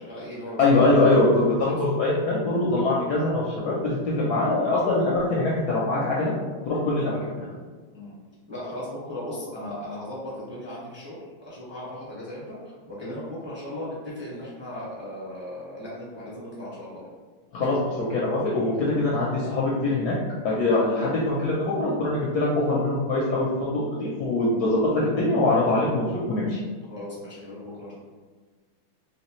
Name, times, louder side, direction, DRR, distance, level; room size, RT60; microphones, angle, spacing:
voice 1, 0.0-0.8 7.9-8.1 8.5-17.0 18.6-18.7 26.9-27.9, left 1 dB, 10° right, -9 dB, 0.8 m, -37 dB
voice 2, 0.6-6.3 6.7-7.5 17.5-20.2 20.4-26.6, left 2 dB, 70° left, -5 dB, 1.0 m, -23 dB
3.2 x 3.0 x 3.0 m, 1.4 s
omnidirectional pair, 2.2 m